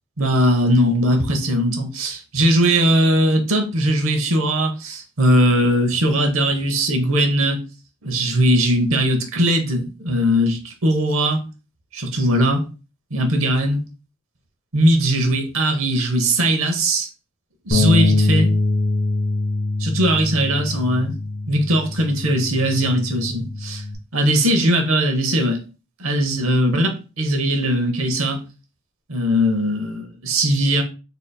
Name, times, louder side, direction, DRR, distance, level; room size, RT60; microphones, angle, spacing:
voice 1, 0.2-7.6 8.0-11.4 11.9-12.6 13.1-13.8 14.7-17.1 17.6-18.5 19.8-21.1 21.5-23.8 24.1-25.6 26.0-28.4 29.1-30.8, right 1 dB, 70° right, 0.8 m, -19 dB
Bass guitar, 17.7-24.0, left 3 dB, 85° left, 1.6 m, -23 dB
3.9 x 3.7 x 2.2 m
head